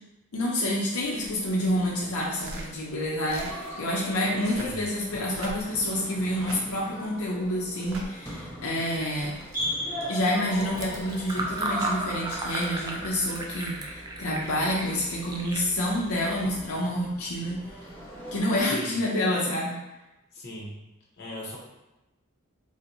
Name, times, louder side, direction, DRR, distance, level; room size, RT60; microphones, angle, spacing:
voice 1, 0.3-9.3 10.1-17.6 18.3-19.8, left 1 dB, 85° left, -4 dB, 0.6 m, -28 dB
sound 1, 1.0-18.7, equal, 15° left, 1.0 m, -40 dB
sound 2, 1.1-1.8 2.3-2.7 3.2-3.6 4.3-4.8 5.2-5.8 6.3-6.6 7.7-8.1 8.9-9.6 10.5-11.2 12.3-13.5 15.3-15.5, right 2 dB, 70° right, 0.5 m, -44 dB
Fill (with liquid), 10.5-16.7, right 2 dB, 20° right, 0.3 m, -35 dB
voice 2, 18.6-19.0 20.3-20.9 21.2-21.6, equal, 55° left, -3 dB, 0.8 m, -39 dB
4.2 x 2.1 x 2.6 m, 0.99 s
head